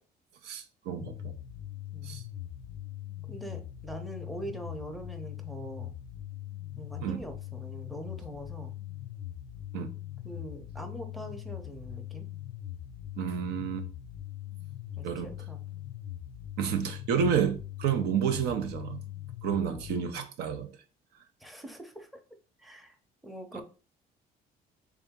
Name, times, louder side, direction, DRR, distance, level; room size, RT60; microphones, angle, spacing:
voice 1, 0.4-1.4 2.0-2.2 7.0-7.2 9.7-9.9 13.2-13.9 15.0-15.3 16.6-19.0 19.4-20.7 23.5-23.6, right 8 dB, 80° right, 0.6 m, -30 dB
sound 1, 1.0-20.0, left 12 dB, 85° left, 0.4 m, -41 dB
voice 2, 3.3-5.9 6.7-8.7 10.2-12.3 15.0-15.6 21.4-22.2 22.6-22.9 23.2-23.6, right 1 dB, ahead, 0.6 m, -43 dB
3.5 x 2.7 x 3.6 m
cardioid pair, 110°, 17 cm